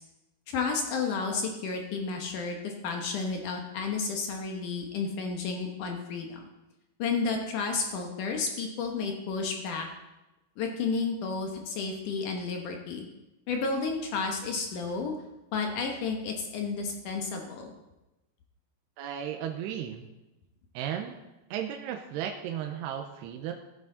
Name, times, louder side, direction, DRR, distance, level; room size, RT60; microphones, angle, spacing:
voice 1, 0.5-6.4 7.0-9.9 10.6-13.1 13.5-15.1 15.5-17.7, left 4 dB, 70° left, 2 dB, 2.0 m, -31 dB
voice 2, 19.0-20.1 20.7-21.2 21.5-23.5, right 9 dB, 80° right, 3 dB, 2.7 m, -35 dB
16.5 x 9.7 x 3.9 m, 1.0 s
omnidirectional pair, 5.0 m